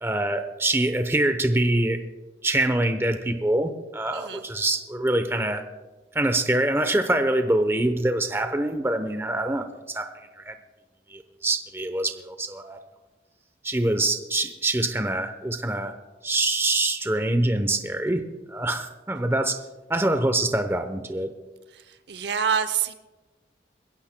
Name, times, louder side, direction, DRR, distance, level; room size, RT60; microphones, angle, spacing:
voice 1, 0.0-2.0 2.4-5.6 6.1-10.1 10.4-10.5 11.1-12.8 13.6-15.9 16.2-19.6 19.9-21.3, right 1 dB, 15° right, 8 dB, 0.8 m, -25 dB
voice 2, 4.1-4.4 21.7-22.9, right 7 dB, 75° right, 11 dB, 0.8 m, -27 dB
22.0 x 16.0 x 2.2 m, 1.2 s
head